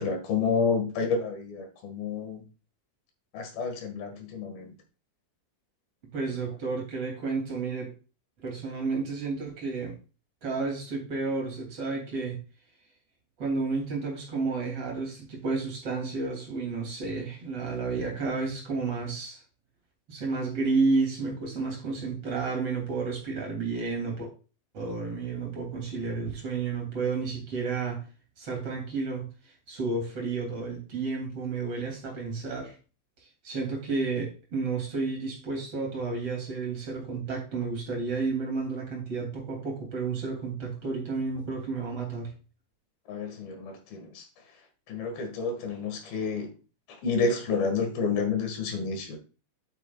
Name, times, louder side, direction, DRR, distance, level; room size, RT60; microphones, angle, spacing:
voice 1, 0.0-2.4 3.3-4.7 43.1-44.2 44.9-46.5 47.0-49.2, left 4 dB, 60° left, 4 dB, 3.0 m, -29 dB
voice 2, 6.1-7.9 8.4-9.9 10.4-12.4 13.4-19.4 20.1-24.3 24.7-28.0 28.4-29.3 29.7-32.7 33.4-42.3, right 4 dB, 35° right, 0 dB, 2.9 m, -31 dB
9.7 x 8.3 x 2.3 m, 0.34 s
omnidirectional pair, 5.4 m